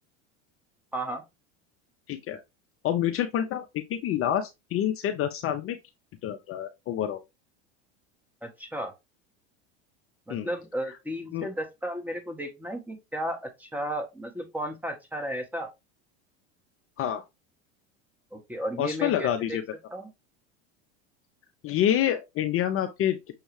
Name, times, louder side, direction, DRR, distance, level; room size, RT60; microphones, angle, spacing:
voice 1, 0.9-1.2 8.4-8.9 10.3-15.7 18.3-19.6 19.9-20.1, equal, 5° right, 1.1 m, -34 dB
voice 2, 2.1-2.4 2.8-5.8 6.2-7.2 10.3-10.5 11.3-11.5 17.0-17.2 18.8-19.6 21.6-23.2, left 10 dB, 40° left, 0.6 m, -27 dB
6.3 x 2.3 x 3.1 m
supercardioid pair, 100°, 35 cm